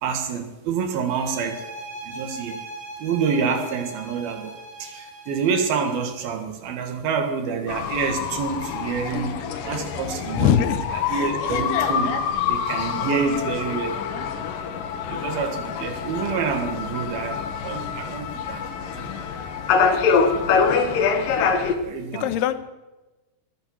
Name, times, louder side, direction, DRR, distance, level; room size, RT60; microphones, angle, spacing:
voice 1, 0.0-1.7 2.0-2.6 3.0-4.5 4.8-12.1 12.5-14.2 15.1-19.1 20.4-20.6 21.8-22.3, right 6 dB, 70° right, 6 dB, 3.4 m, -27 dB
sound 1, 1.1-6.3, right 2 dB, 25° right, 3.0 m, -40 dB
sound 2, 7.7-21.7, left 6 dB, 65° left, 2.6 m, -25 dB
voice 2, 10.4-10.8 11.1-11.2 22.1-22.5, left 11 dB, 85° left, 11 dB, 2.9 m, -21 dB
22.0 x 9.1 x 6.3 m, 1.1 s
omnidirectional pair, 4.5 m